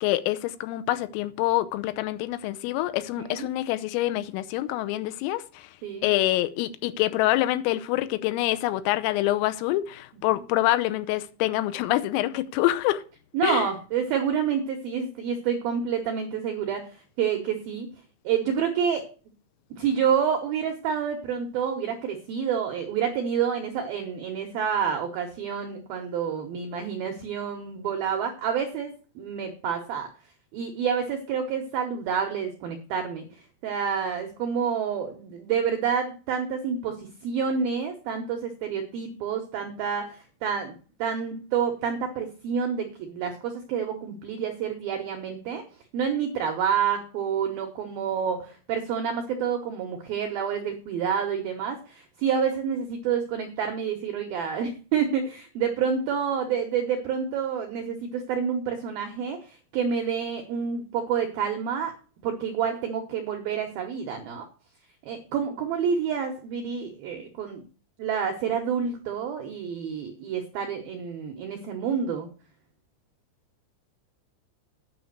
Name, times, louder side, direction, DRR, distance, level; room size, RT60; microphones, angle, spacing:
voice 1, 0.0-5.7 6.0-13.0 13.4-13.7, left 15 dB, 85° left, 3.4 m, -26 dB
voice 2, 3.2-3.5 5.8-6.1 10.3-10.4 13.3-16.9 17.2-17.9 18.2-19.0 19.8-30.1 30.5-33.3 33.6-45.6 45.9-61.9 62.2-64.5 65.0-67.6 68.0-72.3, right 7 dB, 80° right, 2.1 m, -28 dB
9.3 x 5.9 x 7.8 m
omnidirectional pair, 5.8 m